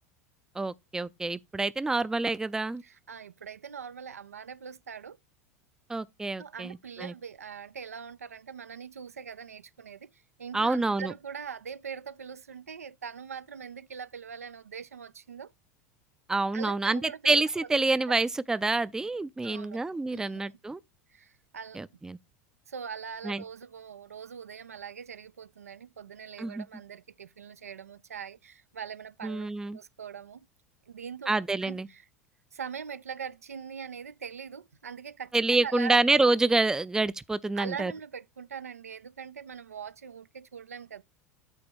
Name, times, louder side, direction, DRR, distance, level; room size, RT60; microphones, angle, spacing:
voice 1, 0.6-2.8 5.9-7.1 10.5-11.1 16.3-20.8 21.8-22.2 23.2-23.4 26.4-26.6 29.2-29.8 31.3-31.9 35.3-37.9, right 3 dB, 5° right, 0.4 m, -27 dB
voice 2, 2.8-5.2 6.4-15.5 16.5-17.4 17.7-18.1 19.4-19.8 20.1-20.5 21.1-21.8 22.7-30.4 30.9-31.4 31.6-32.1 32.5-36.0 37.5-41.0, right 7 dB, 80° right, 0.4 m, -42 dB
8.8 x 2.9 x 6.1 m
figure-of-eight pair, 80°, 8 cm